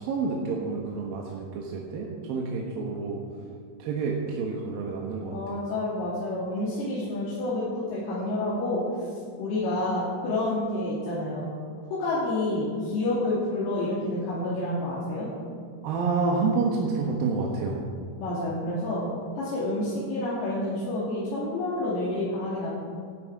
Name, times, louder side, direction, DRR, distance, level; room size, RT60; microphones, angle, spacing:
voice 1, 0.0-3.2 3.8-5.6 15.8-17.9, right 4 dB, 70° right, -1 dB, 3.0 m, -29 dB
voice 2, 5.3-8.8 9.4-11.5 11.9-15.3 18.2-19.0 19.3-22.7, left 2 dB, 90° left, -8 dB, 4.7 m, -29 dB
15.5 x 13.0 x 4.8 m, 2.2 s
omnidirectional pair, 4.4 m